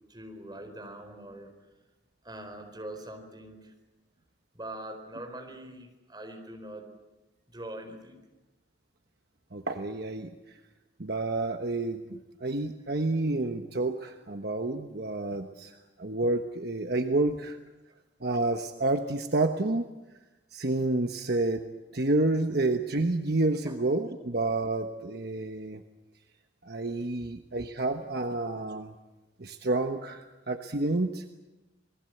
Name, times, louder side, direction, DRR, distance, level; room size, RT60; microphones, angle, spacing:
voice 1, 0.1-1.5 2.2-3.7 4.5-6.8 7.5-8.2 23.7-23.8, right 1 dB, 25° right, 4 dB, 4.6 m, -43 dB
voice 2, 9.5-10.3 11.0-15.7 16.0-17.6 18.2-19.9 20.5-21.6 21.9-25.8 26.6-28.9 29.4-31.4, right 2 dB, 60° right, 5 dB, 1.2 m, -29 dB
28.0 x 20.0 x 8.0 m, 1.1 s
head